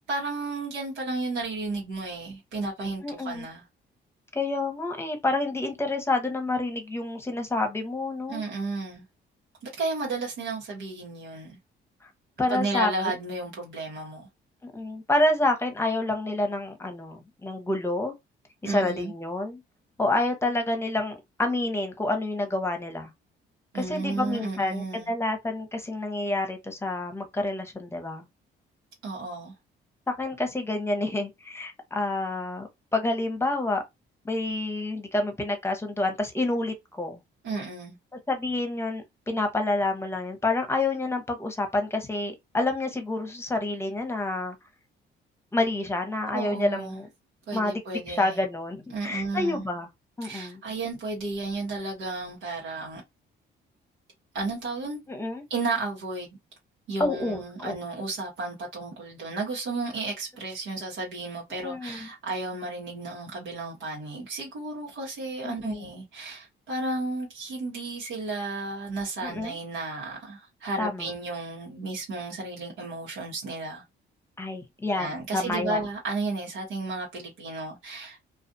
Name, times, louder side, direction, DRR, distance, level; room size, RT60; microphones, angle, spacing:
voice 1, 0.1-3.6 8.3-9.0 9.8-11.6 12.5-14.3 18.6-19.1 23.7-25.1 29.0-29.5 37.4-38.0 46.3-47.0 47.5-48.4 48.9-49.7 50.2-53.0 54.3-55.0 55.5-56.4 56.9-73.8 74.9-78.2, right 3 dB, 90° right, 1.2 m, -33 dB
voice 2, 3.0-3.5 4.3-8.4 12.0-12.1 12.4-12.9 14.6-18.1 18.6-19.6 20.0-23.1 23.7-28.2 30.1-33.8 34.2-37.2 38.3-44.6 45.5-47.1 47.5-47.8 48.1-49.9 50.2-50.6 55.1-55.4 57.0-57.7 61.6-62.1 65.4-65.9 69.2-69.6 70.8-71.1 74.4-75.8, left 2 dB, 10° left, 0.9 m, -28 dB
2.4 x 2.3 x 2.6 m
cardioid pair, 90°, 20 cm